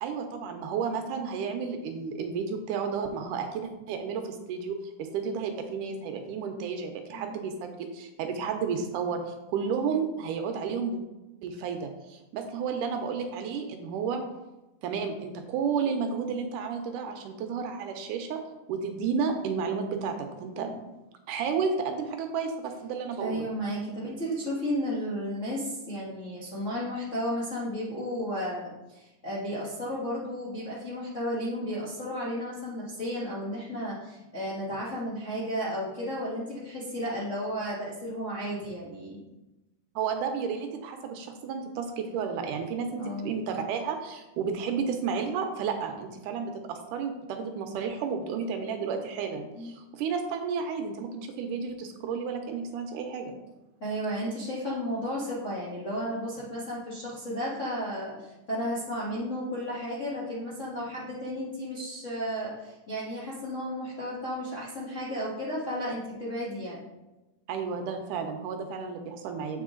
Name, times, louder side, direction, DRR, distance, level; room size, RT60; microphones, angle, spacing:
voice 1, 0.0-11.0 11.4-14.2 14.8-18.4 18.7-20.7 21.3-23.5 40.0-51.1 51.4-53.4 67.5-69.6, right 6 dB, 75° right, 5 dB, 2.1 m, -32 dB
voice 2, 23.2-39.2 43.0-43.3 49.6-49.7 53.8-66.8 69.5-69.6, equal, 50° left, -8 dB, 0.9 m, -33 dB
8.1 x 4.7 x 3.7 m, 1.0 s
omnidirectional pair, 3.9 m